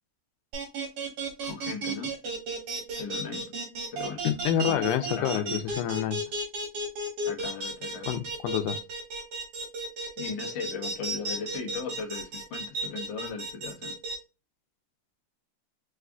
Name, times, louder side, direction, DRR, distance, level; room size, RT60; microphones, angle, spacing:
sound 1, 0.5-14.1, right 2 dB, 55° right, 2.1 m, -33 dB
voice 1, 1.4-2.1 3.0-3.4 3.9-4.2 4.5-5.6 7.2-8.1 10.2-13.9, left 5 dB, 55° left, 1.3 m, -37 dB
voice 2, 4.2-6.2 8.1-8.8, left 11 dB, 90° left, 2.1 m, -28 dB
4.9 x 2.4 x 3.5 m
omnidirectional pair, 3.5 m